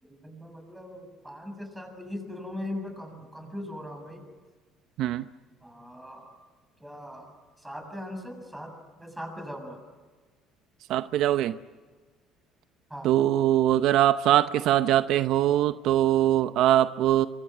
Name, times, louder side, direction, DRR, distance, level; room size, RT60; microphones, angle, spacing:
voice 1, 0.0-4.2 5.6-6.4 6.8-8.7 9.0-9.8 12.9-13.2 15.5-15.6, left 1 dB, 5° right, 5 dB, 7.5 m, -40 dB
voice 2, 10.9-11.6 13.0-17.3, right 12 dB, 70° right, 12 dB, 0.8 m, -22 dB
26.0 x 24.0 x 9.1 m, 1.4 s
cardioid pair, 115°, 0 cm